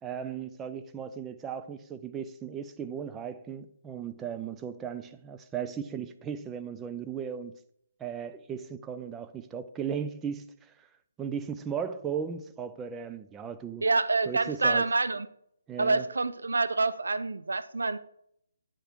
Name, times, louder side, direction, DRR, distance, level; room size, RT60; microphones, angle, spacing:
voice 1, 0.0-7.6 8.0-10.9 11.2-13.8 14.3-14.9 15.7-16.1, right 7 dB, 15° right, 0.4 m, -36 dB
voice 2, 13.8-15.3 15.8-18.0, right 3 dB, 75° right, 0.5 m, -27 dB
9.0 x 4.9 x 4.5 m
figure-of-eight pair, 140°, 0 cm